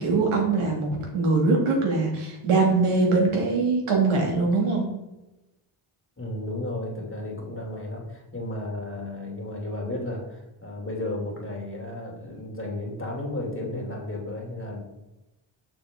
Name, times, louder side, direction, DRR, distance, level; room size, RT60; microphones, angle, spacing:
voice 1, 0.0-4.9, right 3 dB, 85° right, -1 dB, 2.4 m, -22 dB
voice 2, 6.2-14.8, left 1 dB, 25° left, -1 dB, 2.5 m, -33 dB
6.8 x 6.4 x 3.7 m, 0.98 s
cardioid pair, 80°, 49 cm